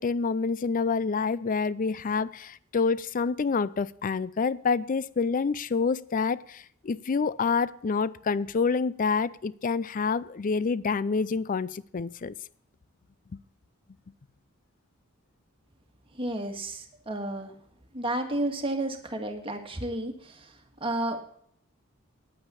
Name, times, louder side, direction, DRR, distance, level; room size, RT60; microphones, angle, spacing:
voice 1, 0.0-12.3, left 5 dB, 40° left, 0.4 m, -27 dB
voice 2, 16.2-17.5 17.9-20.5 20.8-21.2, right 1 dB, 25° right, 1.7 m, -32 dB
10.0 x 9.0 x 6.9 m
head